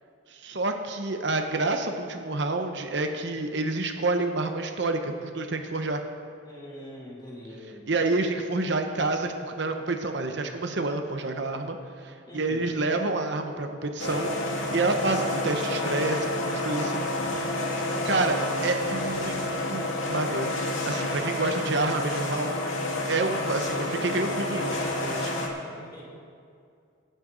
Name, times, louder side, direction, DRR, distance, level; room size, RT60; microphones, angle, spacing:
voice 1, 0.3-6.0 7.9-11.8 12.0-17.4 18.0-18.4 18.6-19.4 19.7-20.6 20.8-22.5 23.1-25.4, right 2 dB, 60° right, 5 dB, 0.9 m, -28 dB
voice 2, 6.4-7.8 12.3-12.7 17.8-18.6 25.6-26.1, equal, 20° left, -6 dB, 3.0 m, -42 dB
sound 1, 14.0-25.5, left 1 dB, 80° left, 2.2 m, -29 dB
24.0 x 9.2 x 3.9 m, 2.3 s
head